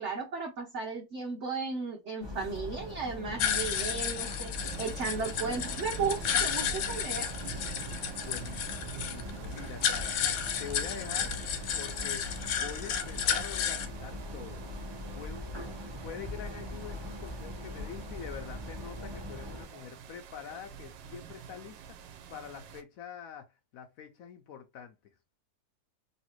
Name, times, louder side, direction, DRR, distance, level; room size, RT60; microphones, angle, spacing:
voice 1, 0.0-7.3, right 4 dB, 55° right, 0.8 m, -35 dB
sound 1, 2.2-19.7, left 1 dB, 40° right, 0.3 m, -42 dB
sound 2, 3.4-13.9, left 8 dB, 85° left, 1.4 m, -33 dB
sound 3, 4.6-22.8, right 7 dB, 85° right, 1.3 m, -47 dB
voice 2, 8.2-14.6 15.1-23.5 23.7-25.0, left 8 dB, 70° left, 0.8 m, -45 dB
3.2 x 2.8 x 2.9 m
omnidirectional pair, 2.0 m